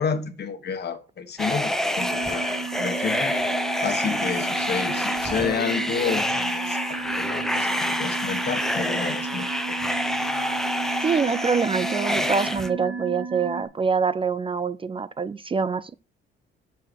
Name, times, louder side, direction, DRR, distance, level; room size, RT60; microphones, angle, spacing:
voice 1, 0.0-3.3 3.8-9.8, left 6 dB, 55° left, 1.5 m, -30 dB
sound 1, 1.4-12.7, left 1 dB, ahead, 0.9 m, -27 dB
sound 2, 2.0-13.6, right 5 dB, 75° right, 1.6 m, -34 dB
voice 2, 11.0-15.9, right 5 dB, 25° right, 0.4 m, -25 dB
7.8 x 4.8 x 6.2 m
cardioid pair, 90°, 20 cm